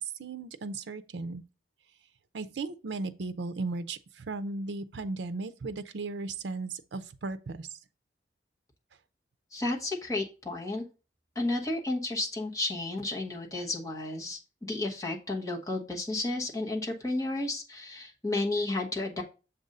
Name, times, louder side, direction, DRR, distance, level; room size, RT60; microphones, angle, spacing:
voice 1, 0.0-1.4 2.3-7.8, right 3 dB, 75° right, 0.5 m, -36 dB
voice 2, 9.5-10.8 11.3-19.2, left 2 dB, 20° left, 1.1 m, -32 dB
7.1 x 2.6 x 5.3 m
head